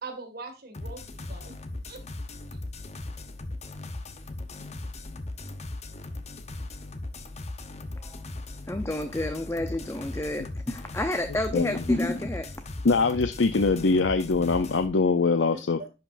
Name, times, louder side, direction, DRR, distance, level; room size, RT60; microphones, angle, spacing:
voice 1, 0.0-1.6 1.9-2.0 15.5-15.9, right 3 dB, 55° right, 2.0 m, -41 dB
sound 1, 0.7-14.9, left 2 dB, 35° left, 0.9 m, -38 dB
voice 2, 8.7-12.5, left 1 dB, 15° left, 0.6 m, -29 dB
voice 3, 11.5-11.8 12.8-15.8, left 4 dB, 75° left, 0.6 m, -23 dB
11.0 x 5.2 x 2.6 m
head